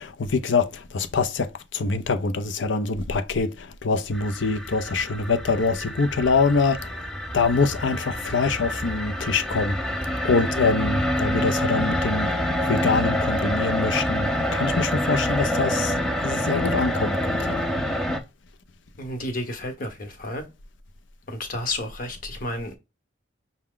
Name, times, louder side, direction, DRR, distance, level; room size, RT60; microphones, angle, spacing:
voice 1, 0.0-6.9 7.3-9.8 10.2-12.3 12.7-15.9 16.2-17.6, left 4 dB, 70° left, 0.5 m, -24 dB
sound 1, 4.1-18.2, equal, ahead, 0.5 m, -27 dB
voice 2, 19.0-20.4 21.3-22.8, left 1 dB, 45° left, 1.0 m, -31 dB
5.8 x 2.2 x 3.7 m
head